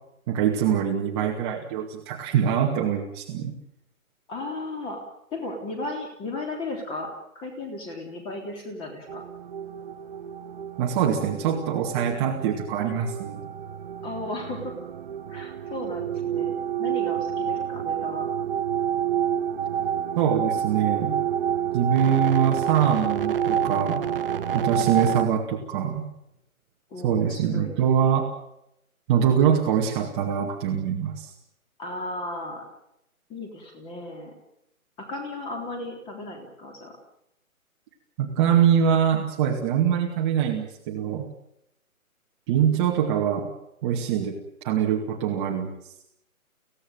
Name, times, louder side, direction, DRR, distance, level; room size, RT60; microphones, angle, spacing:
voice 1, 0.3-3.5 10.8-13.4 20.2-21.2 21.7-24.0 24.5-26.0 27.0-28.3 29.1-31.3 38.2-41.3 42.5-43.5 43.8-44.4 44.6-45.9, right 8 dB, 20° right, 0 dB, 2.3 m, -23 dB
voice 2, 4.3-5.0 5.3-7.1 7.4-9.2 14.0-14.8 15.3-16.5 16.8-18.3 24.7-25.1 26.9-27.7 31.8-32.6 33.3-34.3 35.0-37.0 42.7-42.8, left 2 dB, 10° left, 3 dB, 3.6 m, -35 dB
sound 1, 9.1-25.3, right 9 dB, 40° right, 1.0 m, -28 dB
25.0 x 17.0 x 9.3 m, 0.82 s
hypercardioid pair, 160°, 43 cm